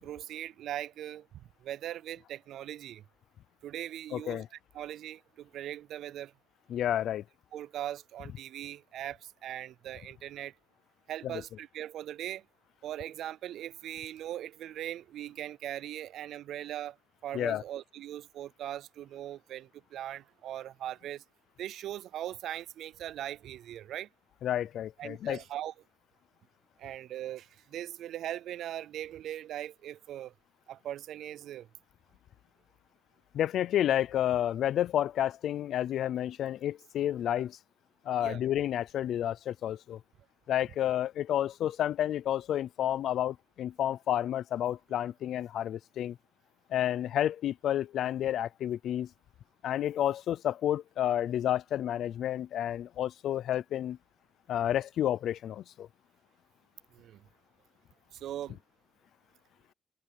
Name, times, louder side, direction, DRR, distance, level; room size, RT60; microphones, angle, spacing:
voice 1, 0.0-1.3 1.6-3.0 3.6-4.4 4.7-6.3 7.5-10.5 11.1-12.4 12.8-17.0 17.2-21.2 21.6-24.1 25.0-25.7 26.8-30.3 30.7-31.7 38.2-38.4 56.9-57.2 58.1-58.6, right 12 dB, 85° right, 0.4 m, -40 dB
voice 2, 4.1-4.5 6.7-7.2 17.3-17.6 24.4-25.4 33.3-37.6 38.1-40.0 40.5-46.2 46.7-49.1 49.6-54.0 54.5-55.9, left 11 dB, 70° left, 0.5 m, -30 dB
wide cardioid pair, 180°, 0 cm